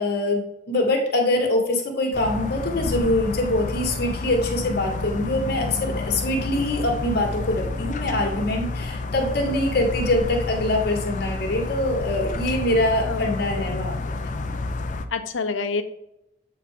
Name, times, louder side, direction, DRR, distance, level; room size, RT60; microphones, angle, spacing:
voice 1, 0.0-14.1, left 1 dB, 55° left, 1 dB, 1.6 m, -24 dB
sound 1, 2.1-15.1, left 3 dB, 40° left, 0.5 m, -30 dB
voice 2, 13.0-13.9 15.1-15.8, left 4 dB, 85° left, 10 dB, 0.7 m, -28 dB
8.2 x 4.2 x 3.6 m, 0.82 s
head